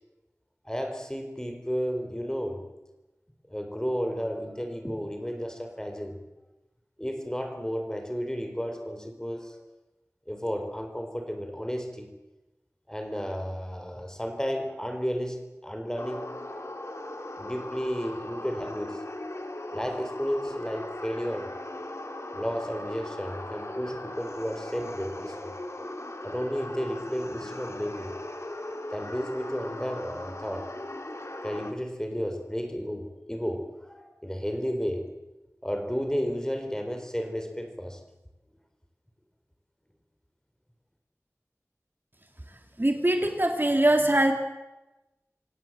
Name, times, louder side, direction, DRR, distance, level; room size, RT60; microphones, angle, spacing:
voice 1, 0.6-2.6 3.5-6.2 7.0-9.6 10.3-12.1 12.9-16.6 17.4-19.0 19.7-21.5 22.3-25.5 26.2-28.2 28.9-30.7 31.4-35.1 35.6-38.0, equal, 10° left, 5 dB, 4.4 m, -32 dB
sound 1, 16.0-31.7, left 1 dB, 55° left, 2.7 m, -38 dB
voice 2, 42.8-44.3, right 1 dB, 40° right, 4 dB, 2.6 m, -22 dB
26.5 x 17.0 x 7.6 m, 1.0 s
wide cardioid pair, 40°, 6 cm